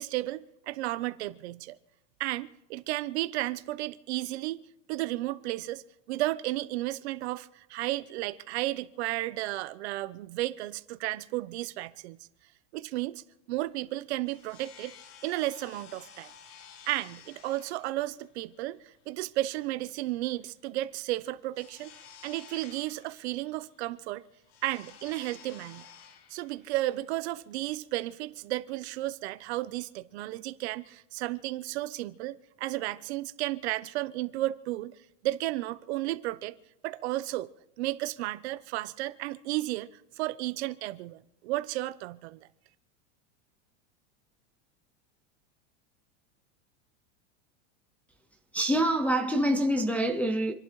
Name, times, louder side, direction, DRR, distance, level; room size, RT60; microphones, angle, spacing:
voice 1, 0.0-1.8 2.2-5.8 6.1-12.2 12.7-13.2 13.5-14.9 15.2-16.3 16.9-21.9 22.2-24.2 24.6-25.9 26.3-34.9 35.2-36.5 36.8-37.5 37.8-39.9 40.2-42.4, right 17 dB, 60° right, 0.9 m, -33 dB
sound 1, 13.9-28.5, left 7 dB, 55° left, 1.6 m, -54 dB
voice 2, 48.5-50.5, right 1 dB, 5° left, 0.4 m, -26 dB
28.0 x 11.0 x 3.2 m
supercardioid pair, 165°, 37 cm